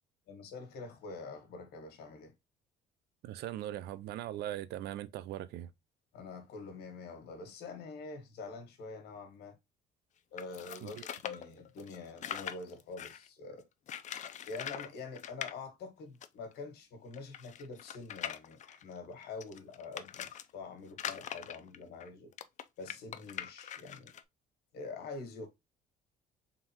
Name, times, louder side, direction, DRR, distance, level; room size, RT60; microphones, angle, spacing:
voice 1, 0.3-2.3 6.1-9.6 10.3-13.7 14.5-22.3 22.8-24.2 24.7-25.5, left 3 dB, 70° left, 1.5 m, -46 dB
voice 2, 3.2-5.7 10.8-11.0, right 13 dB, 75° right, 0.4 m, -40 dB
sound 1, 10.4-13.3 13.9-14.9 15.1-15.5 16.2-16.3 16.5-16.6 17.1-20.4 20.9-24.2, left 9 dB, 45° left, 0.5 m, -42 dB
3.7 x 3.6 x 2.9 m
cardioid pair, 110°, 17 cm